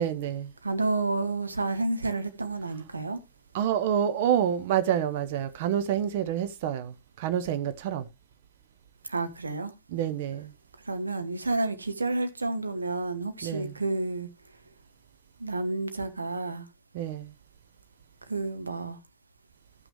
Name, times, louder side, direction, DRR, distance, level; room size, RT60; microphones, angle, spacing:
voice 1, 0.0-0.5 3.5-8.1 9.9-10.5 13.4-13.8 16.9-17.3, right 9 dB, 55° right, 0.7 m, -28 dB
voice 2, 0.6-3.2 9.0-9.7 10.9-14.3 15.4-16.7 18.3-19.0, right 2 dB, 80° right, 1.2 m, -30 dB
14.0 x 6.0 x 3.2 m
figure-of-eight pair, 90°, 0 cm